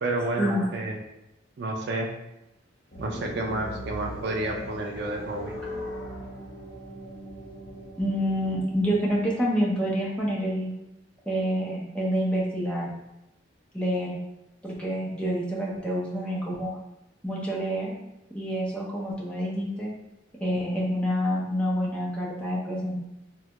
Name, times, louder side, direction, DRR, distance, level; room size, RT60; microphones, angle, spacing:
voice 1, 0.0-1.0 1.6-2.1 3.0-5.5, right 2 dB, 55° right, 2 dB, 0.4 m, -30 dB
sound 1, 2.9-9.2, equal, 45° left, 0.8 m, -39 dB
voice 2, 8.0-10.7 11.3-12.9 13.7-14.2 14.6-16.7 17.2-17.9 18.3-19.9 20.4-22.9, equal, 5° left, -6 dB, 0.6 m, -27 dB
3.4 x 2.2 x 2.9 m, 0.91 s
head